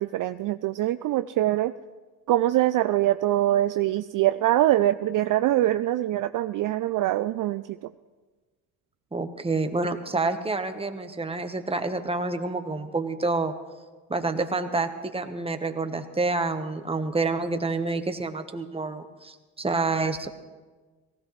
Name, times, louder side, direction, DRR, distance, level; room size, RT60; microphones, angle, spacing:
voice 1, 0.0-1.7 2.3-7.8, right 14 dB, 50° right, 11 dB, 0.5 m, -23 dB
voice 2, 9.1-13.5 14.1-20.3, right 3 dB, 15° right, 7 dB, 1.3 m, -28 dB
18.0 x 16.0 x 3.3 m, 1.3 s
hypercardioid pair, 65°, 41 cm